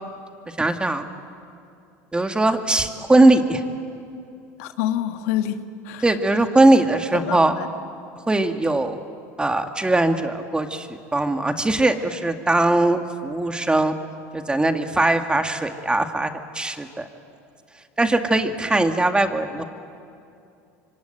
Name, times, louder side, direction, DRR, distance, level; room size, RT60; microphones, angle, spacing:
voice 1, 0.6-1.1 2.1-3.6 6.0-7.5 8.3-9.0 9.4-13.9 14.3-17.1 18.0-19.6, right 2 dB, 10° right, 6 dB, 2.1 m, -20 dB
voice 2, 4.6-6.2 7.1-7.7, left 11 dB, 80° left, 8 dB, 1.6 m, -27 dB
27.0 x 24.5 x 9.2 m, 2.6 s
supercardioid pair, 100°, 8 cm